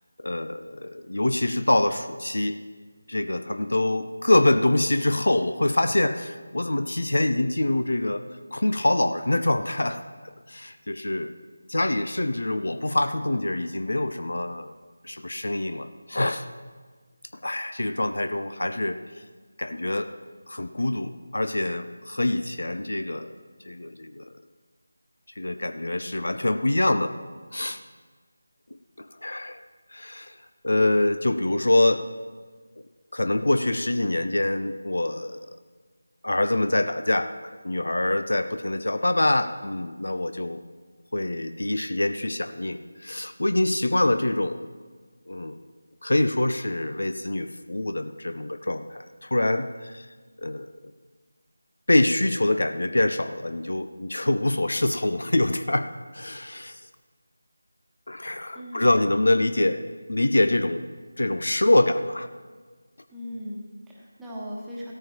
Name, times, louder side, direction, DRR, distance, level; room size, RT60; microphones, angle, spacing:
voice 1, 0.2-2.6 3.1-11.3 11.7-14.7 15.0-16.5 17.4-19.2 19.6-20.1 20.5-23.3 23.6-24.3 25.4-27.1 27.5-27.8 29.0-29.6 29.9-30.4 30.6-32.0 33.1-35.4 36.2-40.6 41.1-44.7 45.3-45.6 46.0-50.1 50.4-50.9 51.9-56.8 58.1-59.8 60.1-60.8 61.2-62.3, left 1 dB, 60° left, 10 dB, 0.5 m, -25 dB
voice 2, 58.5-59.0 63.1-64.9, equal, 5° right, -6 dB, 1.3 m, -38 dB
15.0 x 13.5 x 2.9 m, 1.5 s
figure-of-eight pair, 165°, 0 cm